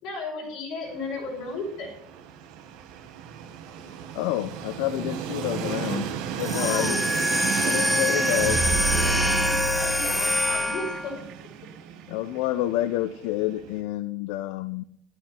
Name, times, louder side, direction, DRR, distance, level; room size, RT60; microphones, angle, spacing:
voice 1, 0.0-1.9 6.5-7.0 9.7-11.2, left 3 dB, 45° left, -1 dB, 5.5 m, -34 dB
Train, 0.9-13.8, right 8 dB, 60° right, 1.3 m, -34 dB
voice 2, 3.9-6.1 6.4-7.1 7.6-9.1 12.1-14.8, left 15 dB, 75° left, 12 dB, 0.5 m, -29 dB
sound 1, 6.4-11.2, left 1 dB, 5° left, 0.4 m, -25 dB
sound 2, 8.1-11.0 11.3-11.4, right 4 dB, 40° right, 0.8 m, -30 dB
11.5 x 9.2 x 5.8 m, 0.70 s
cardioid pair, 175°, 0 cm